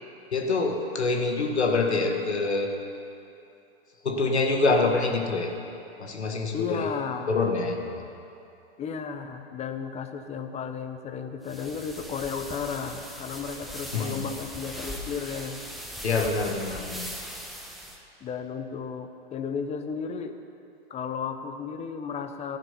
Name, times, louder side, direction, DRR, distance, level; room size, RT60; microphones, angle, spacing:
voice 1, 0.3-2.7 4.0-5.5 6.0-6.9 7.3-7.9 13.9-14.3 16.0-17.1, left 3 dB, 85° left, 4 dB, 1.6 m, -25 dB
voice 2, 6.5-7.3 8.8-15.6 18.2-20.4 20.9-22.6, left 6 dB, 20° left, 7 dB, 0.8 m, -34 dB
sound 1, 11.4-18.0, equal, ahead, 1.2 m, -39 dB
13.5 x 10.5 x 5.7 m, 2.7 s
hypercardioid pair, 110°, 32 cm